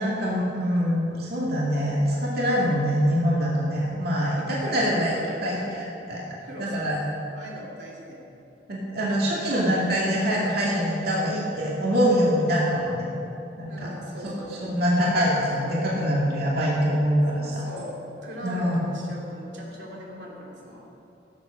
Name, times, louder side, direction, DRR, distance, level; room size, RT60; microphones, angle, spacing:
voice 1, 0.0-6.2 6.6-7.0 8.7-13.1 13.6-13.9 14.7-17.6 18.4-18.8, equal, 60° right, -5 dB, 2.4 m, -24 dB
voice 2, 4.5-5.8 6.4-8.3 13.7-14.8 17.3-20.9, equal, 85° right, -3 dB, 2.8 m, -40 dB
16.5 x 8.0 x 6.5 m, 2.9 s
head